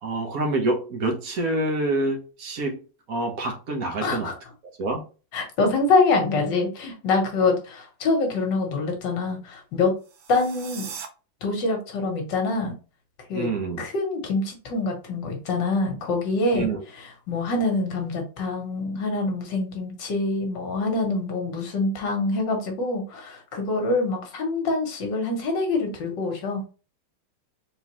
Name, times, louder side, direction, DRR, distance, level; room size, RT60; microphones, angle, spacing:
voice 1, 0.0-2.8 3.1-4.3 4.8-5.0 13.3-13.9 16.5-16.8, right 2 dB, 50° right, 3 dB, 1.3 m, -26 dB
voice 2, 4.0-4.4 5.3-9.9 10.3-10.9 11.4-12.7 13.3-13.5 13.8-16.7 17.0-26.7, left 3 dB, 65° left, 3 dB, 1.7 m, -25 dB
sound 1, 10.0-11.1, right 7 dB, 80° right, 1.5 m, -39 dB
3.7 x 3.7 x 2.9 m, 0.34 s
omnidirectional pair, 2.2 m